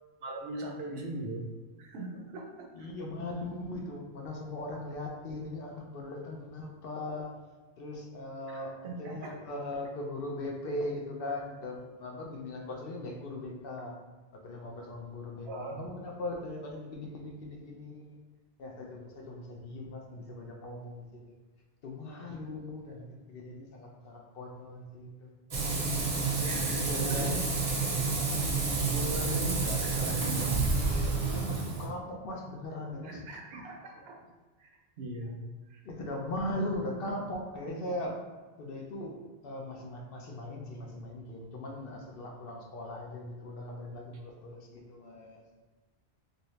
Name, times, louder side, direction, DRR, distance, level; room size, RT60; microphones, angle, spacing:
voice 1, 0.2-1.5 1.8-2.9 8.5-9.3 15.5-15.9 26.4-27.4 27.8-28.0 28.9-30.7 33.0-34.3 34.6-34.7 35.0-35.4 35.7-35.8, right 2 dB, 75° right, 1 dB, 0.8 m, -39 dB
voice 2, 2.7-7.3 7.8-13.9 14.4-18.2 18.6-21.0 21.8-25.3 26.7-27.4 31.2-33.2 35.8-38.2 38.6-39.2 39.4-45.4, left 1 dB, 65° left, 0 dB, 0.8 m, -39 dB
Frying (food), 25.5-31.9, right 3 dB, 40° right, 0.6 m, -29 dB
2.8 x 2.7 x 3.1 m, 1.3 s
omnidirectional pair, 1.1 m